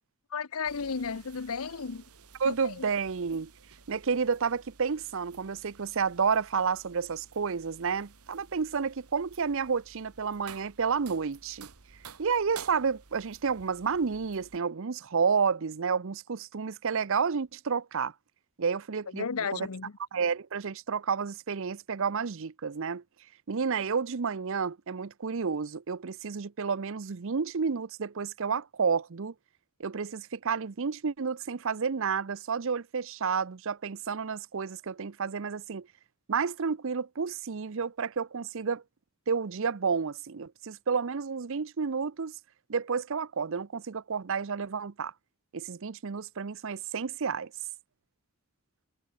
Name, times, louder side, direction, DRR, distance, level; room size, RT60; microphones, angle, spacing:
voice 1, 0.3-2.0 2.4-2.9 19.1-20.0, left 5 dB, 80° left, 0.8 m, -34 dB
sound 1, 0.6-14.6, right 6 dB, 90° right, 1.7 m, -52 dB
voice 2, 2.4-3.5 3.9-11.7 12.2-18.1 18.6-19.2 19.5-19.7 20.1-23.0 23.5-29.3 29.8-35.9 36.3-38.8 39.3-42.4 42.7-45.1 45.5-47.5, right 5 dB, 60° right, 0.6 m, -30 dB
head